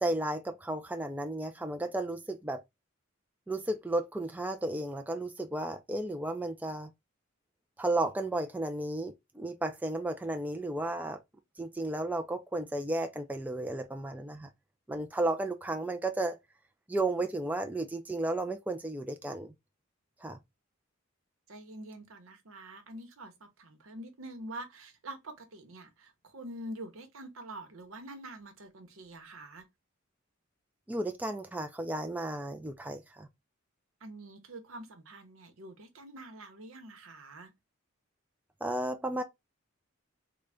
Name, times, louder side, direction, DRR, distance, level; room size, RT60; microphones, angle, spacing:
voice 1, 0.0-2.6 3.5-6.9 7.8-11.2 11.6-14.5 14.9-16.4 16.9-19.5 20.2-20.4 30.9-33.3 38.6-39.2, right 2 dB, 10° right, 0.3 m, -33 dB
voice 2, 21.5-29.7 34.0-37.5, right 1 dB, 75° right, 0.9 m, -46 dB
3.8 x 2.2 x 3.3 m
head